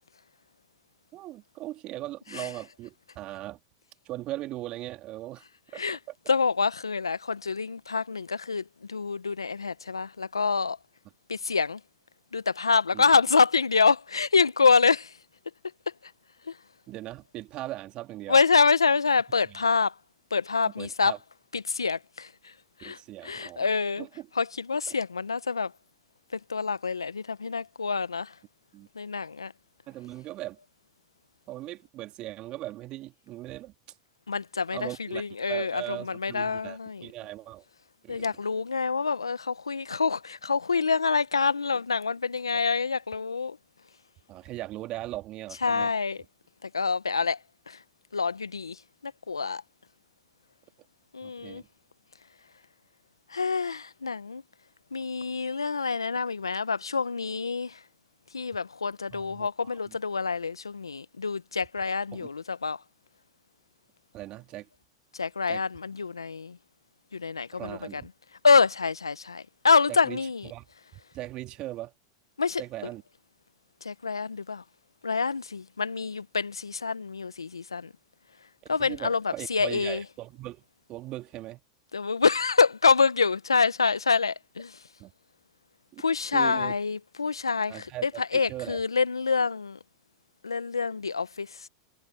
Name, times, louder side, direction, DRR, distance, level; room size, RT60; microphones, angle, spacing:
voice 1, 1.1-3.6 4.1-5.4 5.7-6.0 12.9-13.0 16.9-18.4 19.5-19.6 20.6-21.2 22.8-23.7 24.0-24.3 24.9-25.0 28.7-28.9 29.9-30.6 31.5-33.7 34.7-35.2 35.5-37.6 38.0-38.3 44.3-45.9 51.2-51.7 59.1-59.9 62.1-62.3 64.1-64.7 65.5-65.6 67.5-68.1 69.9-70.6 70.9-71.9 72.6-73.0 78.6-80.6 80.9-81.6 85.0-85.1 85.9-86.0 86.3-86.8 87.7-88.8, right 16 dB, 40° right, 2.3 m, -39 dB
voice 2, 6.3-10.8 11.3-11.8 12.3-15.1 16.5-16.6 18.3-19.9 20.3-21.1 21.5-22.5 22.8-24.0 24.4-25.7 26.3-28.3 28.9-29.5 34.3-37.1 38.1-43.6 45.6-46.2 46.6-47.4 47.7-47.8 48.1-49.6 51.1-51.6 53.3-54.4 54.9-57.8 58.3-62.8 65.1-66.6 67.1-68.0 68.4-70.5 72.4-72.6 73.8-74.6 75.0-77.9 78.7-80.0 81.9-84.8 86.0-89.8 90.4-91.7, left 5 dB, 90° left, 1.3 m, -26 dB
hypercardioid pair, 95°, 2 cm